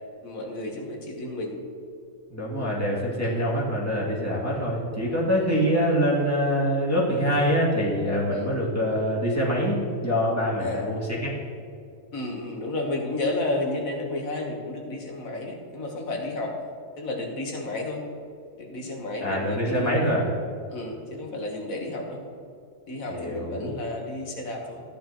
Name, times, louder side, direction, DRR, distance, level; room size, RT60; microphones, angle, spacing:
voice 1, 0.2-1.5 3.2-3.4 8.3-8.5 10.6-10.9 12.1-16.5 17.0-18.0 18.6-20.1 20.7-22.2 22.9-24.8, left 2 dB, 85° left, 0 dB, 1.7 m, -32 dB
voice 2, 2.3-11.3 19.2-20.3 23.1-23.7, equal, 10° left, -6 dB, 2.4 m, -25 dB
13.5 x 10.0 x 3.0 m, 2.4 s
omnidirectional pair, 1.4 m